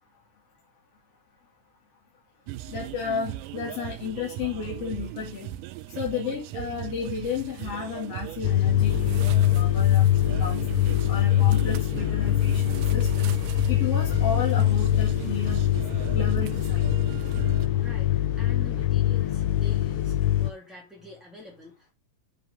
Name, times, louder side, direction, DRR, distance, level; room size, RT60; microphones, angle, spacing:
sound 1, 2.5-17.7, right 13 dB, 90° right, 2.2 m, -37 dB
voice 1, 2.7-5.5 6.0-10.0 10.4-10.7 11.1-13.3 13.7-15.8 16.1-16.9, left 7 dB, 50° left, 2.8 m, -33 dB
sound 2, 8.4-20.5, left 12 dB, 70° left, 1.4 m, -23 dB
voice 2, 17.7-21.9, left 2 dB, ahead, 1.5 m, -46 dB
7.9 x 5.4 x 5.3 m
omnidirectional pair, 3.6 m